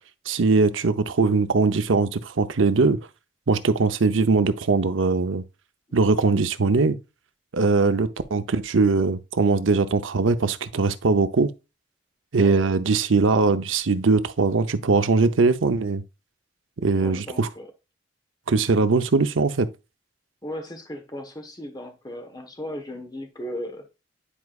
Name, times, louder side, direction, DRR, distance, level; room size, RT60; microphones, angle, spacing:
voice 1, 0.3-3.0 3.5-5.4 5.9-7.0 7.5-11.5 12.3-16.0 16.8-17.5 18.5-19.7, right 4 dB, 85° right, 0.7 m, -21 dB
voice 2, 16.9-17.7 20.4-23.9, equal, 20° left, 1.1 m, -36 dB
10.0 x 4.7 x 2.4 m
head